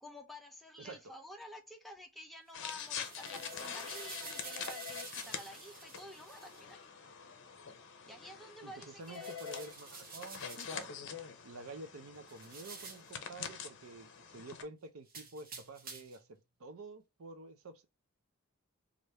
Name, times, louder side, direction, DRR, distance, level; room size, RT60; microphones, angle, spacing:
voice 1, 0.0-6.8 8.1-9.6, left 1 dB, ahead, 0.6 m, -51 dB
voice 2, 0.8-1.1 8.6-10.9 11.4-17.8, right 3 dB, 65° right, 0.6 m, -49 dB
sound 1, 2.5-14.6, left 7 dB, 55° left, 0.6 m, -45 dB
sound 2, 2.5-6.6 9.0-10.9 12.3-13.2 15.1-16.3, right 4 dB, 40° right, 0.9 m, -50 dB
3.3 x 2.5 x 4.2 m
head